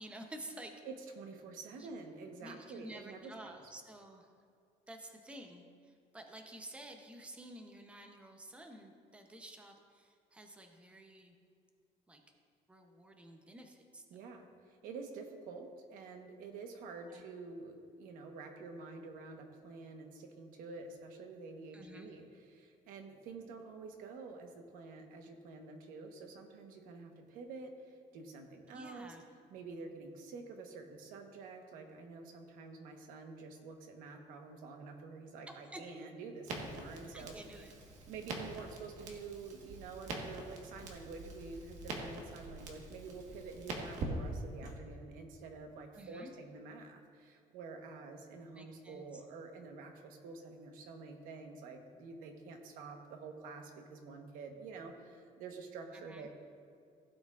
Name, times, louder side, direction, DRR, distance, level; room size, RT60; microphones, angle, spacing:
voice 1, 0.0-0.8 1.7-1.9 2.4-4.3 4.9-11.3 12.1-12.2 12.7-14.0 17.1-17.2 21.7-22.1 28.7-29.2 35.5-35.8 37.1-37.7 45.9-46.3 48.6-49.2 55.9-56.3, right 1 dB, 10° right, 4 dB, 0.7 m, -51 dB
voice 2, 0.8-3.6 14.1-29.2 29.5-37.4 38.1-56.3, right 4 dB, 85° right, 4 dB, 1.1 m, -48 dB
Crackle, 36.4-44.7, right 2 dB, 60° right, 1.4 m, -45 dB
16.0 x 7.9 x 2.4 m, 2.3 s
cardioid pair, 165°, 14 cm